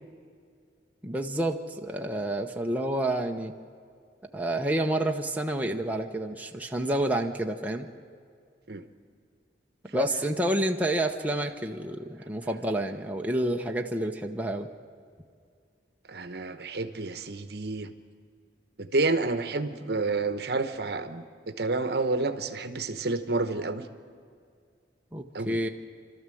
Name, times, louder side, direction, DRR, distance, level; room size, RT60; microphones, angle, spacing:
voice 1, 1.0-3.5 4.3-7.9 9.9-14.7 25.1-25.7, right 1 dB, 10° right, 2 dB, 0.8 m, -29 dB
voice 2, 16.1-17.9 18.8-23.9 25.3-25.6, right 3 dB, 60° right, 10 dB, 1.0 m, -29 dB
28.5 x 12.5 x 7.7 m, 2.2 s
head